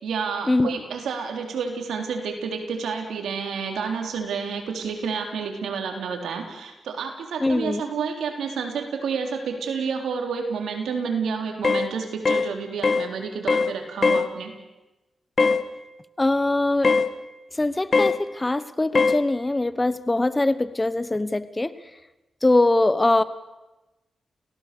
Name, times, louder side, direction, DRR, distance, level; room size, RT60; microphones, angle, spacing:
voice 1, 0.0-14.5, right 5 dB, 90° right, 3 dB, 3.6 m, -30 dB
voice 2, 7.4-7.8 16.2-16.9 17.5-21.7 22.4-23.2, left 2 dB, 25° left, 14 dB, 1.3 m, -22 dB
sound 1, 11.6-11.9 12.3-12.5 12.8-13.1 13.5-13.7 14.0-14.3 15.4-15.6 16.8-17.1 17.9-18.2 18.9-19.2, left 4 dB, 50° left, 1.6 m, -20 dB
29.5 x 17.0 x 6.9 m, 1.1 s
cardioid pair, 60°, 0 cm